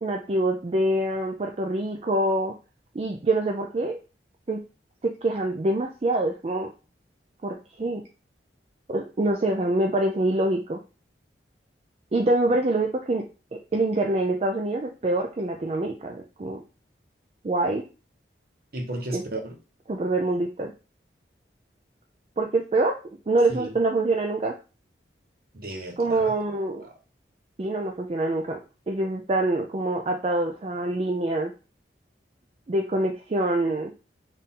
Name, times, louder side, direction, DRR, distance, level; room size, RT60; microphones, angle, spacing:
voice 1, 0.0-2.5 2.9-4.0 4.5-4.6 5.0-6.7 7.4-8.0 8.9-10.8 12.1-13.2 13.7-16.6 17.4-17.8 19.1-19.2 19.9-20.7 22.4-23.0 23.3-24.6 26.0-26.8 27.6-28.6 28.9-31.5 32.7-33.9, right 2 dB, 35° right, 2 dB, 0.4 m, -25 dB
voice 2, 18.7-19.6 23.5-23.8 25.5-26.4 26.8-26.9, right 1 dB, 55° right, 3 dB, 0.9 m, -34 dB
4.2 x 2.6 x 3.6 m, 0.33 s
head